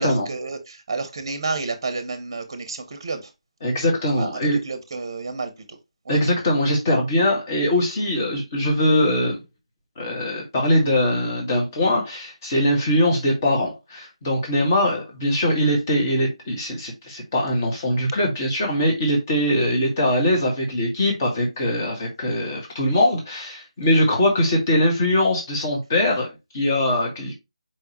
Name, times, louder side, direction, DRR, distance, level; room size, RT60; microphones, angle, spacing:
voice 1, 0.0-3.3 4.2-5.8 6.1-6.2, right 3 dB, 35° right, 0.8 m, -30 dB
voice 2, 3.6-4.6 6.1-9.4 10.0-27.3, left 1 dB, 25° left, 1.7 m, -22 dB
4.6 x 3.5 x 3.0 m
figure-of-eight pair, 160°, 3 cm